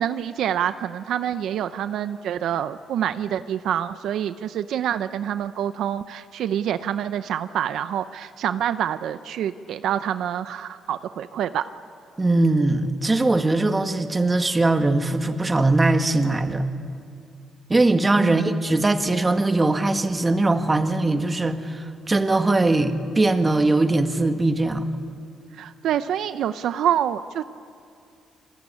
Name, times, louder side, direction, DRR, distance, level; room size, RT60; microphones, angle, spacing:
voice 1, 0.0-11.6 18.2-18.6 25.5-27.4, right 10 dB, 75° right, 12 dB, 0.7 m, -26 dB
voice 2, 12.2-16.7 17.7-24.9, right 2 dB, 20° right, 7 dB, 1.9 m, -21 dB
28.0 x 21.0 x 9.8 m, 2.4 s
cardioid pair, 90°, 0 cm